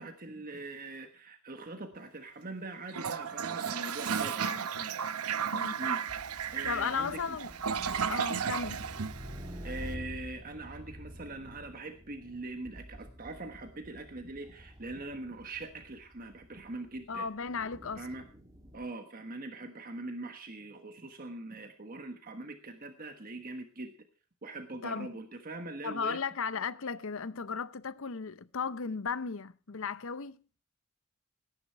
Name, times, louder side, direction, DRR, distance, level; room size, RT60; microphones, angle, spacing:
voice 1, 0.0-4.7 5.8-6.0 6.5-7.4 9.6-17.3 18.0-18.2 18.7-23.9 24.4-26.2, right 2 dB, 40° right, 1.3 m, -42 dB
Toilet flush, 2.9-9.8, right 7 dB, 85° right, 0.8 m, -34 dB
voice 2, 4.4-5.0 5.5-5.8 6.7-7.5 8.0-8.9 17.1-18.1 24.8-25.2 25.8-30.4, left 5 dB, 65° left, 0.7 m, -36 dB
sound 1, 6.1-18.9, equal, 15° right, 2.0 m, -48 dB
17.5 x 10.0 x 4.6 m
head